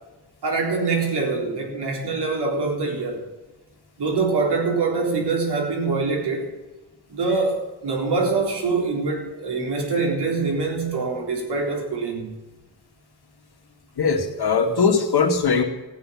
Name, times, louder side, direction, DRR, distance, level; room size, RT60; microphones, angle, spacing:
voice 1, 0.4-3.2 4.0-6.5 7.1-12.3, right 3 dB, 80° right, 1 dB, 4.1 m, -24 dB
voice 2, 14.0-15.6, left 5 dB, 70° left, 3 dB, 2.3 m, -20 dB
15.0 x 9.6 x 7.4 m, 1.1 s
wide cardioid pair, 115°, 39 cm